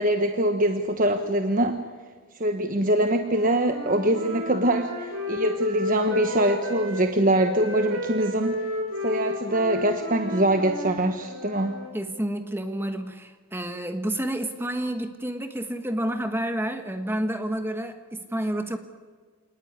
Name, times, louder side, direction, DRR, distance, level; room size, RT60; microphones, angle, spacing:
voice 1, 0.0-1.8 2.4-8.6 9.0-11.8, right 1 dB, 40° right, 6 dB, 1.2 m, -23 dB
Wind instrument woodwind instrument, 3.2-7.0 7.4-11.9, left 2 dB, 65° right, 5.5 m, -33 dB
voice 2, 11.9-18.8, right 1 dB, 10° right, 7 dB, 1.3 m, -29 dB
27.5 x 19.0 x 9.6 m, 1.5 s
head